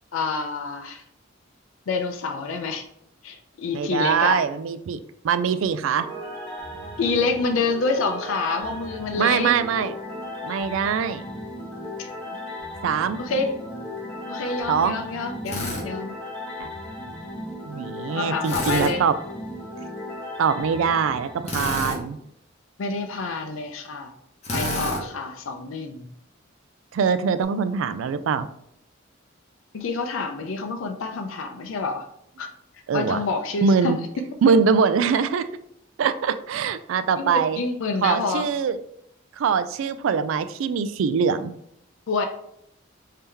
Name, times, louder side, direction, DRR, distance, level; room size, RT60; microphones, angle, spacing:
voice 1, 0.1-1.0 1.9-2.8 3.2-4.4 7.0-9.5 13.2-13.5 14.3-16.1 18.1-19.0 22.8-24.1 24.5-26.1 29.7-32.1 32.4-32.5 32.9-33.9 37.2-38.5 42.1-42.3, left 4 dB, 85° left, 5 dB, 0.5 m, -27 dB
voice 2, 3.7-5.0 5.2-6.1 9.2-9.9 10.4-11.2 12.8-13.2 14.7-15.0 17.7-19.1 20.4-22.2 26.9-28.5 32.9-33.2 33.6-34.0 34.4-35.4 36.0-37.6 38.0-38.8 39.4-41.5, right 6 dB, 80° right, 12 dB, 0.3 m, -22 dB
sound 1, 6.0-22.0, left 1 dB, 10° left, 1.3 m, -36 dB
Drill, 15.5-15.8 18.4-18.9 21.4-22.0 24.4-25.0, left 1 dB, 35° left, 0.8 m, -28 dB
3.6 x 2.8 x 3.4 m, 0.74 s
head